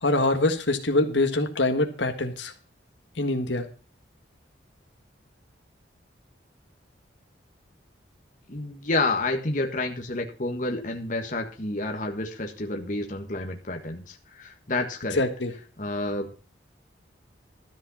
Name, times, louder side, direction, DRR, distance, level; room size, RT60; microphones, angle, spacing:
voice 1, 0.0-2.5 3.2-3.6 15.2-15.5, left 2 dB, 75° left, 6 dB, 1.7 m, -24 dB
voice 2, 8.5-15.2 15.8-16.4, left 2 dB, 45° left, 3 dB, 1.5 m, -29 dB
13.0 x 5.5 x 7.1 m, 0.36 s
head